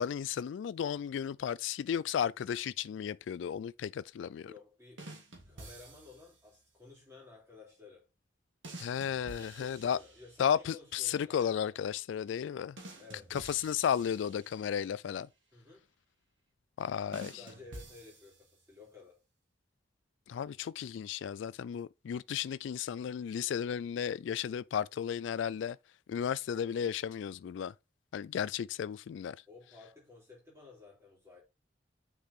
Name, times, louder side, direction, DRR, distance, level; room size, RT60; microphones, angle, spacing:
voice 1, 0.0-4.5 8.8-10.0 10.4-12.8 13.3-15.3 16.8-17.4 20.3-25.8 26.1-27.7 28.1-29.4, left 8 dB, 80° left, 0.3 m, -34 dB
voice 2, 4.4-5.1 5.5-8.1 9.4-11.8 13.0-13.4 15.5-15.9 17.4-19.2 29.5-31.4, left 3 dB, 15° right, 3.5 m, -54 dB
sound 1, 5.0-6.4 8.6-10.6 12.8-14.9 17.1-18.7, right 1 dB, 90° right, 2.2 m, -50 dB
6.5 x 4.8 x 3.6 m
head